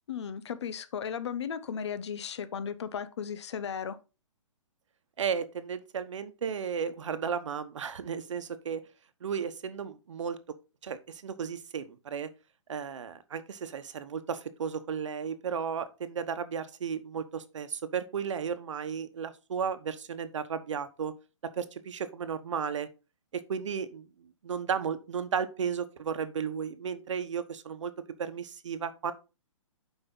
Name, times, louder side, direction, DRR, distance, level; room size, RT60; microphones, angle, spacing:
voice 1, 0.1-4.0, left 7 dB, 60° left, 0.9 m, -35 dB
voice 2, 5.2-8.8 9.2-10.4 10.8-12.3 12.7-21.1 21.4-22.9 23.3-24.1 24.4-27.9 28.2-29.1, right 7 dB, 65° right, 1.1 m, -34 dB
8.1 x 5.3 x 3.9 m
hypercardioid pair, 170°, 17 cm